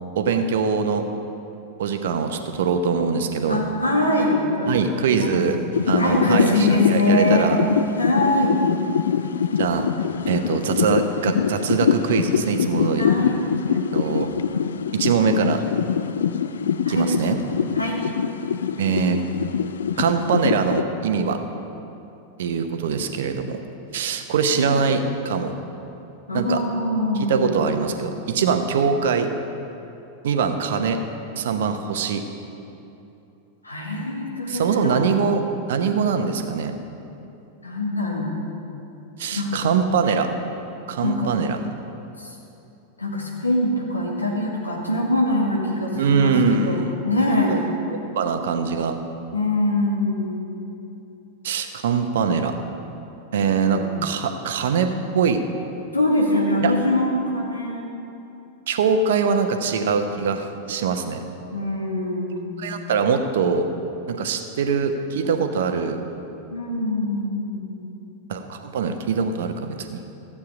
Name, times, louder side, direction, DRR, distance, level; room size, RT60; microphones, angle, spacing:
voice 1, 0.1-1.0 1.8-3.6 4.7-5.6 5.8-7.6 9.6-9.9 10.3-13.1 13.7-14.3 14.9-15.6 16.9-17.4 18.8-19.2 20.0-21.4 22.4-23.6 23.9-25.5 26.3-26.6 27.3-29.3 30.2-31.0 31.4-32.2 34.5-35.4 35.7-36.7 39.2-40.3 40.9-41.6 46.0-46.9 48.1-49.0 51.4-52.5 53.3-55.4 56.6-56.7 58.7-61.2 62.6-63.7 64.1-66.0 68.3-70.0, right 6 dB, 60° right, 7 dB, 0.9 m, -22 dB
voice 2, 3.5-5.4 6.0-7.5 8.0-8.6 13.0-13.4 16.8-17.1 17.7-18.0 24.5-24.9 26.3-27.9 33.6-35.1 37.6-38.3 39.3-39.6 41.0-41.3 42.2-42.4 43.0-47.6 49.3-50.7 53.3-54.0 55.9-57.9 61.5-62.7 66.5-67.9, left 1 dB, 80° left, -2 dB, 2.1 m, -23 dB
sound 1, 5.7-20.8, left 7 dB, 65° left, 0.3 m, -24 dB
14.5 x 8.5 x 5.1 m, 2.9 s
figure-of-eight pair, 90°, 0 cm